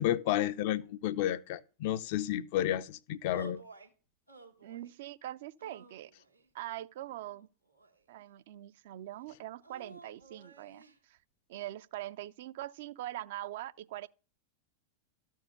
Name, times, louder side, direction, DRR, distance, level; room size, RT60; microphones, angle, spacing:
voice 1, 0.0-3.6, left 12 dB, 50° left, 0.4 m, -31 dB
sound 1, 3.3-3.9 4.3-5.0 5.6-6.5 7.2-8.2 9.6-11.0, right 3 dB, 85° right, 2.1 m, -53 dB
voice 2, 4.6-6.1 6.5-7.5 8.1-11.2 11.5-14.1, right 14 dB, 55° right, 0.5 m, -43 dB
13.5 x 4.6 x 8.1 m
figure-of-eight pair, 90°, 0 cm